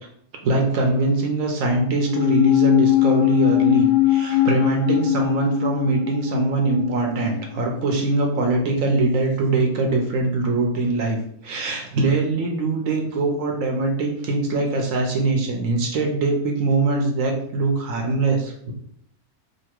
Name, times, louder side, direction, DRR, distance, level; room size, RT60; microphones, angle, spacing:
voice 1, 0.4-11.2 11.4-18.7, right 3 dB, 70° right, 1 dB, 1.0 m, -22 dB
sound 1, 2.0-8.6 8.8-8.9, left 13 dB, 25° left, 0.8 m, -21 dB
2.9 x 2.6 x 4.4 m, 0.68 s
omnidirectional pair, 1.6 m